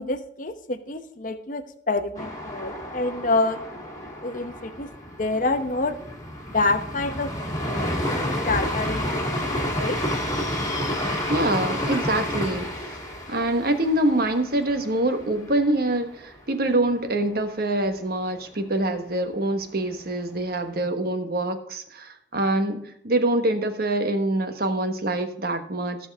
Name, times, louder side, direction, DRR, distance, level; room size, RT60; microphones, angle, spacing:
voice 1, 0.0-3.6 4.2-4.9 5.2-6.0 6.5-9.3 9.7-10.0, left 2 dB, 45° left, 8 dB, 0.9 m, -27 dB
sound 1, 2.1-15.9 16.2-16.3 16.7-17.2, equal, 20° left, 2.1 m, -30 dB
voice 2, 11.3-12.8 13.3-26.0, right 1 dB, 55° right, 8 dB, 1.3 m, -25 dB
17.0 x 6.3 x 3.6 m, 0.70 s
head